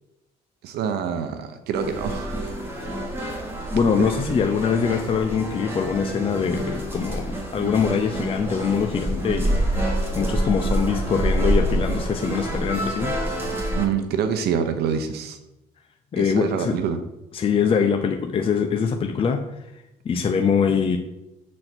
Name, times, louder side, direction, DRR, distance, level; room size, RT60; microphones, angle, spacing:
voice 1, 0.6-2.5 2.8-2.9 3.9-4.3 13.7-15.4 16.2-17.0, right 7 dB, 75° right, 8 dB, 0.8 m, -26 dB
sound 1, 1.7-13.8, right 1 dB, 15° right, 2.5 m, -27 dB
voice 2, 3.7-9.6 10.1-13.2 16.1-16.8 17.3-19.4 20.0-21.0, left 6 dB, 35° left, 4 dB, 0.6 m, -23 dB
7.8 x 4.2 x 6.0 m, 0.94 s
cardioid pair, 110°, 17 cm